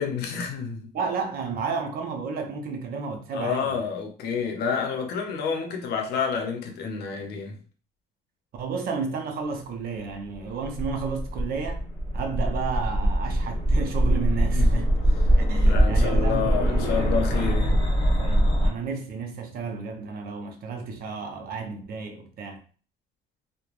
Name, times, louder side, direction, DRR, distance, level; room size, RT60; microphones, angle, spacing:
voice 1, 0.0-0.9 3.3-7.6 14.5-14.8 15.7-17.8, left 6 dB, 75° left, 0.7 m, -29 dB
voice 2, 0.9-3.8 8.6-11.9 12.1-14.9 15.4-22.6, right 5 dB, 60° right, 0.6 m, -32 dB
sound 1, 10.3-18.7, equal, 30° left, 0.9 m, -22 dB
3.1 x 2.1 x 2.4 m
cardioid pair, 110°, 17 cm